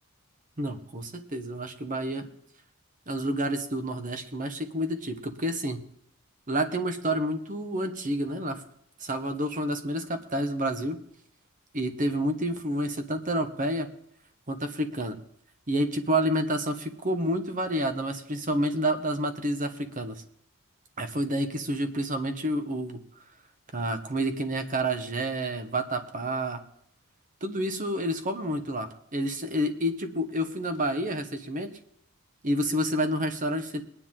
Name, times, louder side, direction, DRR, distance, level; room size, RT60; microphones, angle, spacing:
voice 1, 0.6-2.3 3.1-5.8 6.5-8.6 9.0-11.0 11.7-13.9 14.5-15.2 15.7-20.2 21.0-23.0 23.7-26.6 27.4-31.8 32.4-33.8, right 1 dB, 35° right, 7 dB, 1.2 m, -29 dB
21.0 x 9.9 x 3.8 m, 0.68 s
head